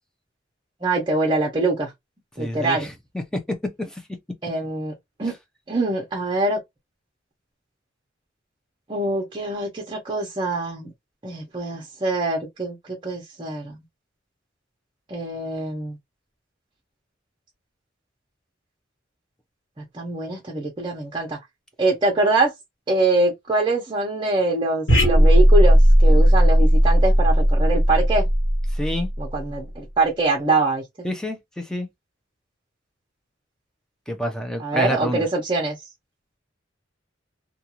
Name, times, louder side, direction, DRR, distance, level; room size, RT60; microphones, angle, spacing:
voice 1, 0.8-1.9 2.4-2.9 4.4-4.9 5.2-5.3 5.7-6.6 8.9-10.9 11.2-13.8 15.1-16.0 19.8-21.4 21.8-22.5 22.9-28.3 29.2-30.8 34.6-35.8, right 2 dB, 25° right, 0.8 m, -24 dB
voice 2, 2.4-4.0 28.7-29.1 31.0-31.9 34.1-35.3, equal, 5° left, 0.6 m, -28 dB
sound 1, 24.9-29.5, equal, 90° left, 1.4 m, -16 dB
2.6 x 2.4 x 2.9 m
head